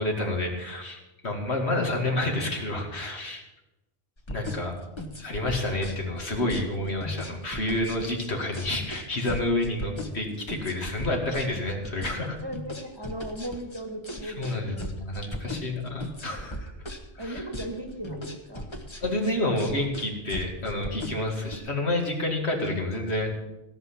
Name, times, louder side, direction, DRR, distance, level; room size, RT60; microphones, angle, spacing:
voice 1, 0.0-3.4 4.3-4.8 5.2-12.4 14.2-16.7 17.1-17.4 19.0-23.3, left 2 dB, 65° left, 1 dB, 2.5 m, -29 dB
sound 1, 4.2-21.6, equal, 25° left, 1.2 m, -38 dB
voice 2, 12.4-15.7 17.2-18.6 19.6-19.7, right 1 dB, 20° right, 3 dB, 1.6 m, -38 dB
17.0 x 5.9 x 8.5 m, 1.0 s
omnidirectional pair, 1.2 m